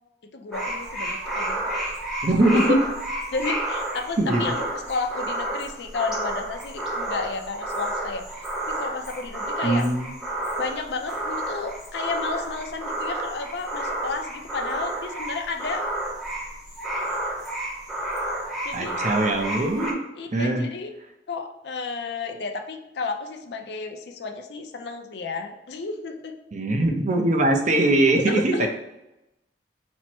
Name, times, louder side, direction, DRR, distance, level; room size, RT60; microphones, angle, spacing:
voice 1, 0.3-1.8 2.5-2.8 3.3-8.3 8.7-9.9 10.6-15.8 17.0-17.1 18.6-19.1 20.2-20.9 21.3-26.4 28.3-28.7, left 4 dB, 65° left, 5 dB, 0.5 m, -32 dB
sound 1, 0.5-19.9, right 1 dB, ahead, 0.8 m, -30 dB
voice 2, 2.2-2.8 4.2-4.5 9.6-10.1 18.7-20.0 20.3-20.7 26.5-28.7, right 1 dB, 45° right, 3 dB, 0.6 m, -21 dB
4.4 x 2.1 x 4.3 m, 0.93 s
head